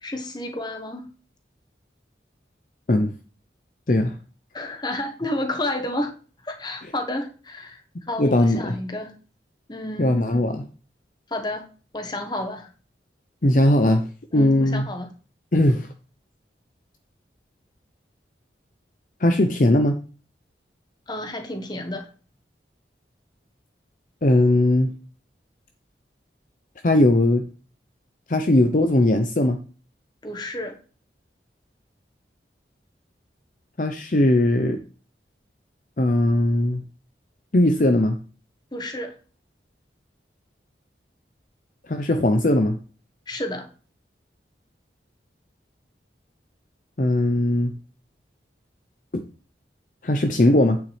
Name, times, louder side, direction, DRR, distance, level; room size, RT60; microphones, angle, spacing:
voice 1, 0.0-1.1 4.5-6.1 6.4-9.1 9.7-10.2 11.3-11.7 11.9-12.7 14.3-15.1 21.1-22.1 30.2-30.8 38.7-39.2 43.3-43.7, left 1 dB, 25° left, 1.2 m, -31 dB
voice 2, 8.2-8.8 10.0-10.7 13.4-14.1 14.3-14.9 15.5-15.9 19.2-20.0 24.2-24.9 26.8-27.4 28.3-29.6 33.8-34.8 36.0-36.8 37.5-38.2 41.9-42.8 47.0-47.7 49.1-49.2 50.0-50.8, left 1 dB, 45° left, 0.7 m, -19 dB
8.8 x 7.2 x 3.3 m
head